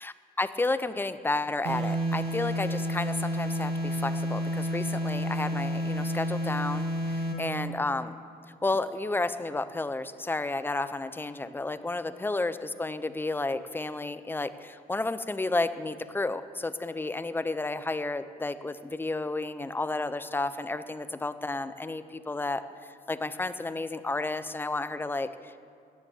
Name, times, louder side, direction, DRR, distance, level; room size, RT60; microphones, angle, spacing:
voice 1, 0.0-8.2 8.6-22.6 23.1-25.6, left 2 dB, 10° left, 13 dB, 0.6 m, -32 dB
sound 1, 1.6-7.5, equal, 70° right, 2.2 m, -30 dB
15.5 x 10.0 x 7.1 m, 2.3 s
cardioid pair, 110°, 17 cm